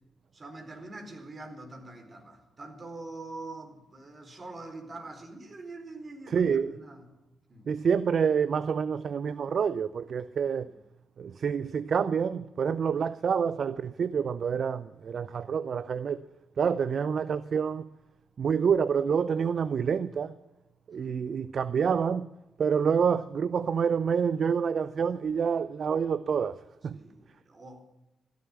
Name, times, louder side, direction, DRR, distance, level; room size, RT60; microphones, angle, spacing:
voice 1, 0.3-7.0 7.5-7.7 10.6-10.7 12.9-13.0 21.0-21.3 26.9-27.8, right 2 dB, 45° right, 4.1 m, -44 dB
voice 2, 6.3-6.8 7.7-10.7 11.2-16.2 16.6-17.9 18.4-20.4 20.9-22.3 22.6-27.0, right 6 dB, 60° right, 0.5 m, -27 dB
16.0 x 11.5 x 7.2 m
hypercardioid pair, 40°, 0 cm